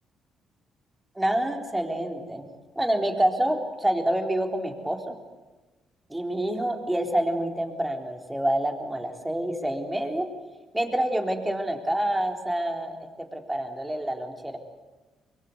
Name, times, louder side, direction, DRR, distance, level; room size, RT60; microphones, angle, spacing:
voice 1, 1.2-2.5 2.8-5.2 6.1-10.3 10.7-14.6, right 1 dB, 10° right, 3 dB, 3.9 m, -27 dB
24.5 x 22.5 x 8.2 m, 1.2 s
cardioid pair, 90°, 0 cm